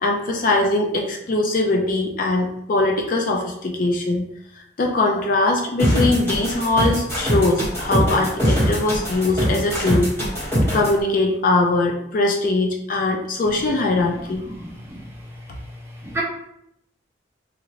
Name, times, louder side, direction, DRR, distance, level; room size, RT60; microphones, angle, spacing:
voice 1, 0.0-4.2 4.8-10.1 10.6-14.5, left 2 dB, 45° left, 0 dB, 0.4 m, -21 dB
sound 1, 5.8-10.9, equal, 10° left, 1.3 m, -21 dB
voice 2, 14.5-15.1 16.0-16.2, right 2 dB, 15° right, -3 dB, 0.6 m, -31 dB
2.7 x 2.5 x 3.0 m, 0.77 s
head